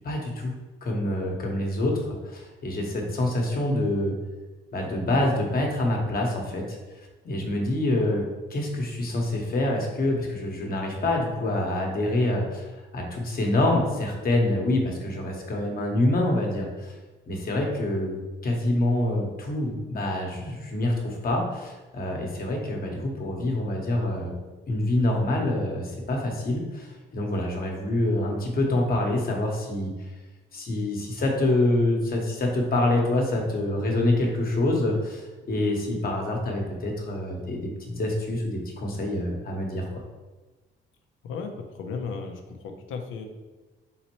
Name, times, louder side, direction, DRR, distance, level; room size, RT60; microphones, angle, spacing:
voice 1, 0.0-0.5 0.8-4.1 4.7-6.8 7.2-8.2 8.5-16.9 17.3-24.3 24.7-29.9 30.5-40.0, left 1 dB, 50° left, 0 dB, 1.1 m, -26 dB
voice 2, 41.2-43.3, left 5 dB, 85° left, 4 dB, 0.7 m, -35 dB
4.2 x 3.9 x 3.0 m, 1.2 s
cardioid pair, 90°, 20 cm